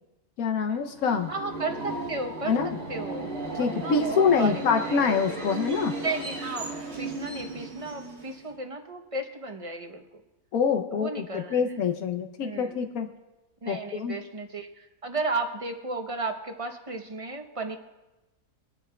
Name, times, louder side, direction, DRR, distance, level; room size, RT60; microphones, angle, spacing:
voice 1, 0.4-1.3 2.4-2.8 3.5-6.0 10.5-13.1 13.7-14.2, left 6 dB, 80° left, 6 dB, 1.1 m, -25 dB
Subway metro underground, 0.8-8.6, right 2 dB, 50° right, 1.8 m, -36 dB
voice 2, 1.3-2.6 2.9-4.6 4.9-5.0 6.0-6.7 7.0-10.0 10.9-11.6 12.4-12.7 13.6-17.8, right 3 dB, 30° right, 5 dB, 0.8 m, -34 dB
25.0 x 9.8 x 2.3 m, 1.1 s
omnidirectional pair, 1.5 m